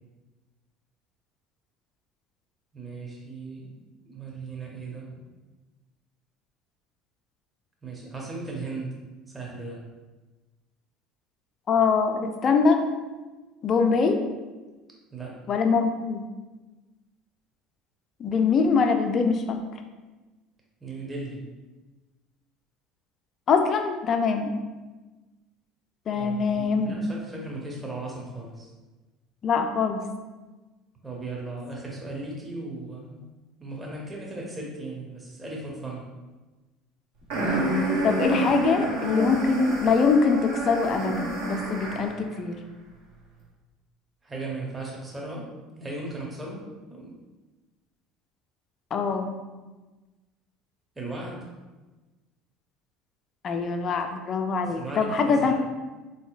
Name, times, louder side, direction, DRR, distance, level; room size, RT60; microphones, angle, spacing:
voice 1, 2.7-3.7 4.1-5.2 7.8-9.0 9.3-9.8 15.1-15.4 20.8-21.5 26.1-28.7 31.0-33.3 33.6-36.0 44.2-46.6 46.9-47.2 51.0-51.5 54.6-55.5, right 2 dB, 20° right, -2 dB, 0.8 m, -37 dB
voice 2, 11.7-12.8 13.6-14.2 15.5-16.2 18.2-19.6 23.5-24.5 26.1-26.9 29.4-30.0 38.0-42.6 48.9-49.3 53.4-55.5, left 5 dB, 40° left, 5 dB, 0.4 m, -23 dB
sound 1, 37.3-42.2, right 2 dB, 65° right, 0.9 m, -28 dB
3.7 x 2.8 x 2.4 m, 1.2 s
hypercardioid pair, 65°, 0 cm